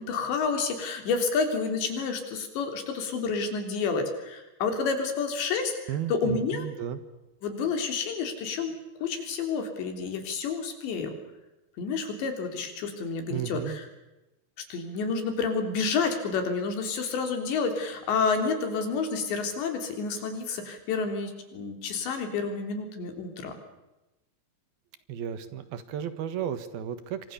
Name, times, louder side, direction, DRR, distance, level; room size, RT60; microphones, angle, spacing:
voice 1, 0.0-6.7 7.4-8.7 9.0-11.1 11.8-13.9 14.7-23.5, left 5 dB, 90° left, 6 dB, 5.8 m, -29 dB
voice 2, 5.9-7.0 13.3-13.8 25.1-27.3, right 9 dB, 65° right, 12 dB, 3.1 m, -34 dB
26.5 x 25.0 x 6.9 m, 1.0 s
omnidirectional pair, 4.9 m